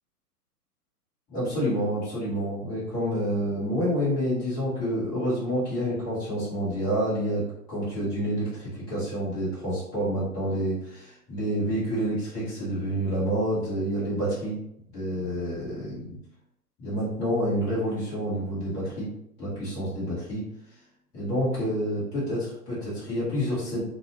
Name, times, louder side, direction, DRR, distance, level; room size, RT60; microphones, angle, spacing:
voice 1, 1.3-14.6 14.9-16.2 16.8-19.1 19.4-20.5 21.1-23.8, equal, 5° left, -10 dB, 0.5 m, -28 dB
2.5 x 2.1 x 2.7 m, 0.77 s
figure-of-eight pair, 115°, 46 cm